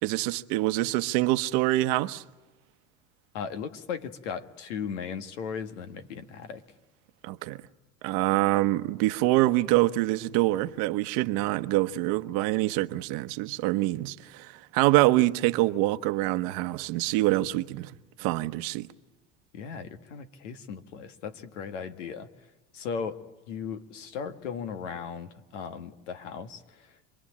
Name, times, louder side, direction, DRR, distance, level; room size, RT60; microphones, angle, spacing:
voice 1, 0.0-2.2 7.2-7.6 8.0-17.9 18.2-18.9, right 18 dB, 65° right, 1.1 m, -25 dB
voice 2, 3.3-6.6 19.5-22.3 22.7-23.2 23.5-27.1, left 6 dB, 85° left, 1.8 m, -37 dB
27.0 x 21.5 x 8.7 m
hypercardioid pair, 95°, 36 cm